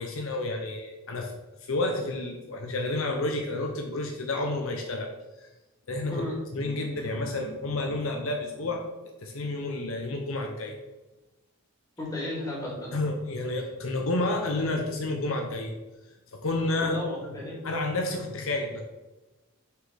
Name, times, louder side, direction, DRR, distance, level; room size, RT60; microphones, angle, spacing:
voice 1, 0.0-1.3 1.6-5.1 5.4-5.5 5.9-6.3 6.5-8.9 9.2-10.8 12.9-15.7 16.3-16.9 17.6-18.8, left 2 dB, 65° left, 2 dB, 0.7 m, -30 dB
voice 2, 12.0-12.9 16.8-17.7, left 1 dB, 15° left, -5 dB, 2.0 m, -34 dB
5.5 x 4.0 x 4.9 m, 1.1 s
head